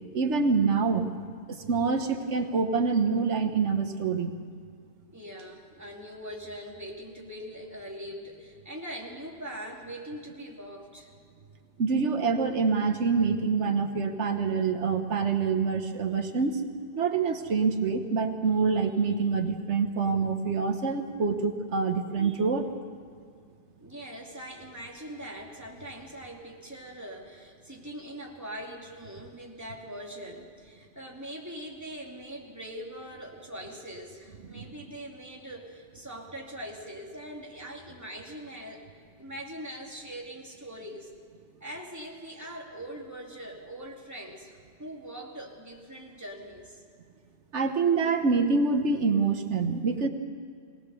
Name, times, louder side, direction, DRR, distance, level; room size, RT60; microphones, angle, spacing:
voice 1, 0.1-1.1 1.5-4.4 11.8-16.6 17.0-22.7 34.5-34.6 47.5-50.1, right 5 dB, 85° right, 6 dB, 1.4 m, -26 dB
voice 2, 5.1-11.1 23.8-38.8 39.2-41.1 41.6-46.8, equal, 15° right, -2 dB, 2.7 m, -42 dB
22.5 x 18.5 x 6.9 m, 2.2 s
omnidirectional pair, 1.2 m